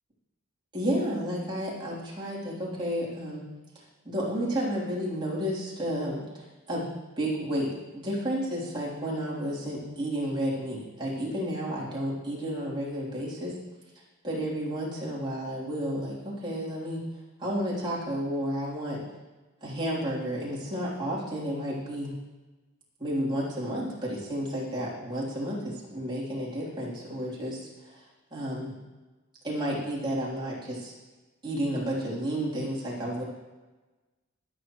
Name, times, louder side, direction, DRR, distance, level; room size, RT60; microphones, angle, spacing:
voice 1, 0.7-3.4 4.1-6.9 7.2-7.7 7.9-13.5 14.2-17.0 17.4-19.0 19.6-22.1 23.0-28.0 28.3-28.7 29.4-30.9 31.4-33.2, equal, 20° right, -7 dB, 3.5 m, -31 dB
23.5 x 8.4 x 3.2 m, 1.2 s
head